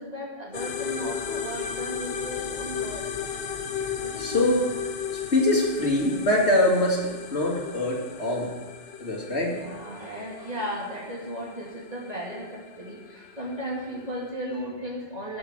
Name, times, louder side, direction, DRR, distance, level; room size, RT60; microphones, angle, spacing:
voice 1, 0.0-3.4 4.0-4.5 9.4-15.4, equal, 40° right, -4 dB, 2.4 m, -36 dB
sound 1, 0.5-14.3, left 7 dB, 70° left, 1.0 m, -35 dB
voice 2, 4.2-4.7 5.1-8.5 9.0-9.6, left 1 dB, 90° left, -2 dB, 2.6 m, -24 dB
15.0 x 6.2 x 6.2 m, 1.2 s
omnidirectional pair, 1.1 m